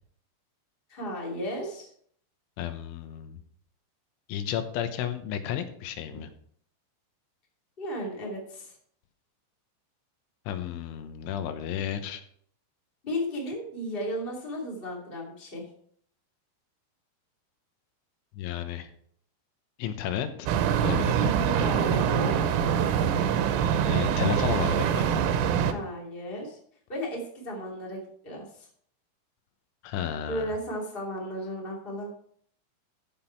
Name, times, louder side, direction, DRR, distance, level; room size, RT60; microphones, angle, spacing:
voice 1, 0.9-1.9 6.1-6.3 7.8-8.7 13.0-15.7 21.5-22.6 25.6-26.6 26.9-28.7 30.3-32.1, equal, 20° left, -2 dB, 1.6 m, -35 dB
voice 2, 2.6-3.4 4.3-6.3 10.5-12.2 18.3-18.9 19.8-20.5 20.8-21.3 23.9-25.1 29.8-30.6, left 10 dB, 80° left, 8 dB, 3.3 m, -32 dB
sound 1, 20.5-25.7, right 8 dB, 85° right, 3.4 m, -24 dB
13.5 x 6.1 x 4.5 m, 0.63 s
omnidirectional pair, 5.8 m